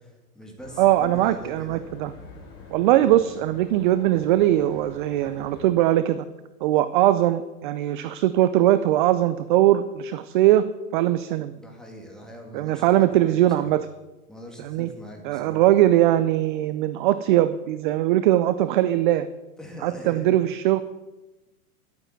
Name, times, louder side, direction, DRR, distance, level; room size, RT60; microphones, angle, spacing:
voice 1, 0.0-1.8 3.0-3.1 11.6-13.7 14.3-15.7 19.6-20.4, equal, ahead, 0 dB, 2.7 m, -42 dB
sound 1, 0.6-5.6, left 3 dB, 30° left, 4.0 m, -45 dB
voice 2, 0.8-2.1 2.7-6.2 6.6-10.7 10.9-11.5 12.5-13.9 14.6-14.9 15.2-19.3 19.8-20.8, right 13 dB, 35° right, 13 dB, 0.4 m, -20 dB
11.5 x 9.2 x 7.5 m, 1.1 s
hypercardioid pair, 135°, 46 cm